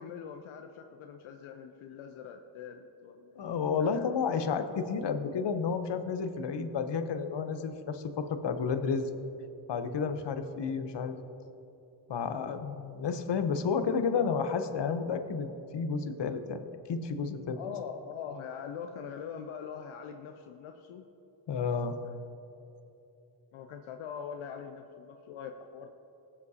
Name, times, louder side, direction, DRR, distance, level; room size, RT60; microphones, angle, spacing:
voice 1, 0.0-4.1 17.6-21.0 22.0-22.1 22.5-22.6 23.5-25.9, left 7 dB, 85° left, 5 dB, 0.6 m, -43 dB
voice 2, 3.4-9.1 9.7-11.2 12.1-16.6 16.9-17.6 21.5-21.9, left 5 dB, 60° left, 8 dB, 0.9 m, -31 dB
18.0 x 7.3 x 2.8 m, 3.0 s
cardioid pair, 55°, 47 cm